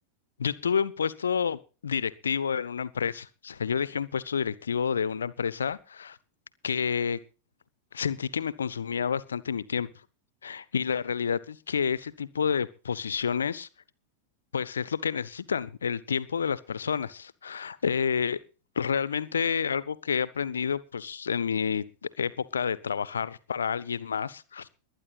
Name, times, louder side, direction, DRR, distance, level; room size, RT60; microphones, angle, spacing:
voice 1, 0.4-6.2 6.6-7.2 7.9-9.9 10.4-13.7 14.5-18.4 18.8-21.8 22.2-24.7, left 7 dB, 70° left, 19 dB, 1.0 m, -29 dB
21.0 x 9.8 x 4.1 m, 0.34 s
figure-of-eight pair, 90°, 0 cm